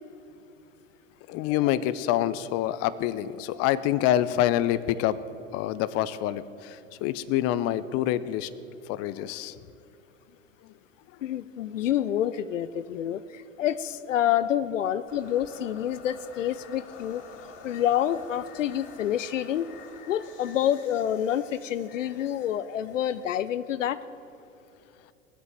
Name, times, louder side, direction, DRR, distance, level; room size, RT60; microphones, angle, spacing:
voice 1, 1.3-5.2 5.5-8.5 8.9-9.6, left 12 dB, 40° left, 15 dB, 0.6 m, -26 dB
voice 2, 11.2-17.2 17.6-19.7 20.1-24.0, left 10 dB, 80° left, 14 dB, 0.6 m, -28 dB
sound 1, 15.1-24.1, left 6 dB, 60° left, 2.2 m, -49 dB
19.0 x 8.1 x 7.4 m, 2.7 s
hypercardioid pair, 90°, 37 cm